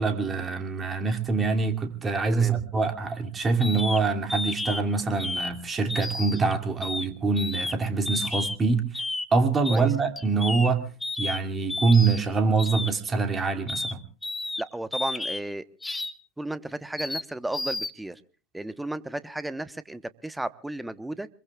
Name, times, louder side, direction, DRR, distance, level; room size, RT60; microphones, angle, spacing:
voice 1, 0.0-8.9 9.3-10.8 11.2-14.0, right 4 dB, 25° right, 4 dB, 2.7 m, -25 dB
sound 1, 3.6-4.0 4.3-4.8 5.2-5.5 5.9-6.5 6.8-7.1 7.4-7.7 8.1-8.6 8.9-9.3 9.6-9.8 10.2-10.7 11.0-11.4 11.7-12.2 12.6-12.9 13.7-13.9 14.2-14.6 14.9-15.4 15.8-16.1 17.0-17.2 17.5-17.9, left 2 dB, 10° left, 1.4 m, -31 dB
voice 2, 14.6-15.6 16.4-18.2 18.5-21.3, right 1 dB, 5° right, 14 dB, 1.1 m, -34 dB
26.5 x 22.0 x 2.4 m, 0.38 s
hypercardioid pair, 80°, 0 cm